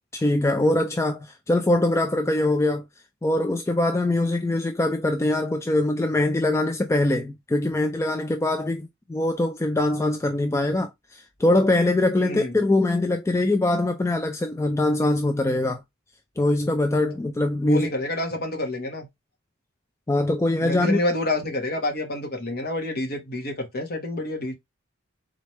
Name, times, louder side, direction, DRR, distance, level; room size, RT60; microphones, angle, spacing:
voice 1, 0.1-2.9 3.2-15.8 16.4-17.9 20.1-21.0, left 2 dB, 15° left, 0.3 m, -23 dB
voice 2, 12.2-12.5 17.7-19.1 20.6-24.5, left 1 dB, 45° left, 1.3 m, -28 dB
4.0 x 3.2 x 3.1 m
head